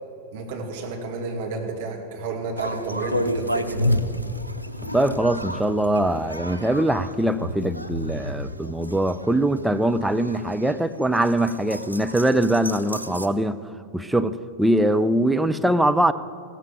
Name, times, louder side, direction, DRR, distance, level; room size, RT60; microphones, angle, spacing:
voice 1, 0.3-3.9, right 3 dB, 55° right, 1 dB, 2.5 m, -31 dB
sound 1, 2.6-13.3, left 1 dB, 90° left, 0.7 m, -31 dB
voice 2, 4.9-13.6 13.9-16.1, right 1 dB, 5° right, 9 dB, 0.6 m, -22 dB
15.5 x 14.5 x 4.9 m, 2.5 s
figure-of-eight pair, 90°, 0 cm